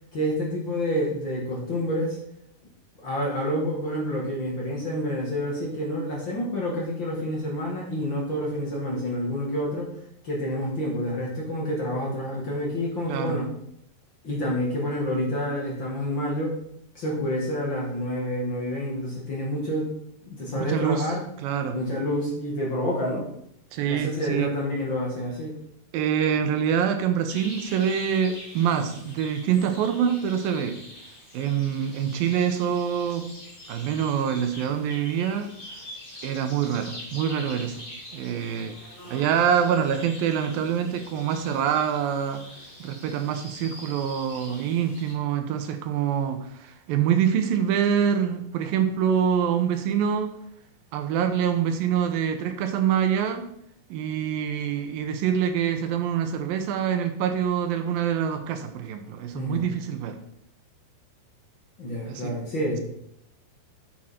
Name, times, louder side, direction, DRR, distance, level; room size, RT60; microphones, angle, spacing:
voice 1, 0.1-2.2 3.0-9.9 10.2-13.5 14.2-16.6 17.0-19.9 20.3-21.2 21.7-23.2 23.9-25.5 59.3-59.7 61.8-62.8, equal, 40° left, -3 dB, 1.9 m, -28 dB
voice 2, 13.1-13.4 20.6-21.1 21.4-21.8 23.7-24.5 25.9-30.8 31.3-33.3 33.7-35.5 36.2-37.8 38.1-38.7 39.1-42.4 42.8-50.3 50.9-53.5 53.9-60.2 62.0-62.3, right 8 dB, 75° right, 7 dB, 2.4 m, -25 dB
sound 1, 27.3-45.1, equal, 20° left, 1.7 m, -44 dB
9.0 x 7.5 x 4.4 m, 0.71 s
omnidirectional pair, 4.6 m